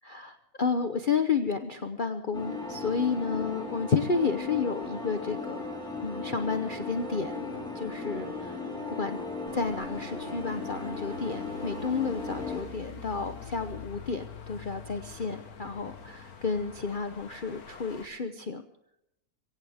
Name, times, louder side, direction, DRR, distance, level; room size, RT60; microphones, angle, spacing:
voice 1, 0.0-5.6 6.0-8.6 8.9-9.2 9.5-18.6, left 5 dB, 40° left, 8 dB, 0.9 m, -31 dB
sound 1, 2.3-12.6, left 3 dB, 5° left, 5.6 m, -37 dB
sound 2, 9.4-18.1, left 4 dB, 70° left, 2.0 m, -45 dB
23.0 x 17.0 x 3.6 m, 0.80 s
omnidirectional pair, 1.6 m